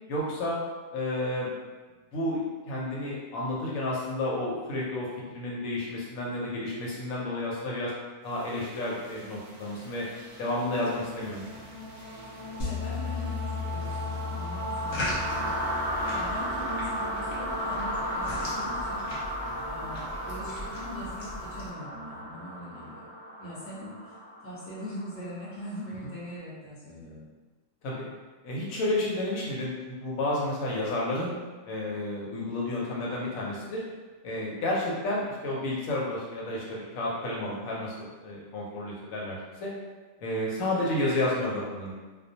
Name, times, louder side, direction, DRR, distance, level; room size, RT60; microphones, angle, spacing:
voice 1, 0.1-0.6 0.9-1.5 2.1-2.4 2.7-7.9 8.2-10.1 10.4-11.6 19.6-19.7 27.8-28.1 28.4-31.3 31.6-33.8 34.2-39.7 40.2-41.9, left 1 dB, 90° left, -4 dB, 1.1 m, -31 dB
sound 1, 8.4-26.2, equal, 65° right, 0.8 m, -36 dB
voice 2, 12.3-19.1 19.6-23.0 23.4-24.2 24.4-27.2, equal, 15° left, -10 dB, 0.7 m, -42 dB
sound 2, 12.6-16.9, left 6 dB, 60° left, 0.8 m, -36 dB
sound 3, 14.8-21.7, left 1 dB, 40° left, 0.4 m, -39 dB
2.3 x 2.2 x 2.7 m, 1.3 s
omnidirectional pair, 1.4 m